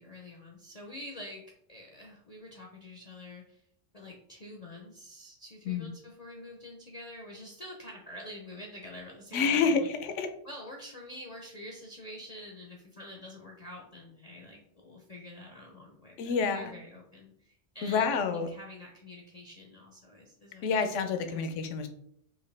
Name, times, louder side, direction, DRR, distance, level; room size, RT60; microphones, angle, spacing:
voice 1, 0.0-3.6 3.9-9.9 10.4-21.0 21.3-21.4, left 1 dB, 40° left, 0 dB, 0.6 m, -47 dB
voice 2, 9.3-10.3 16.2-16.7 17.8-18.5 20.6-21.9, left 5 dB, 75° left, 8 dB, 0.9 m, -28 dB
4.8 x 2.9 x 3.3 m, 0.69 s
omnidirectional pair, 1.3 m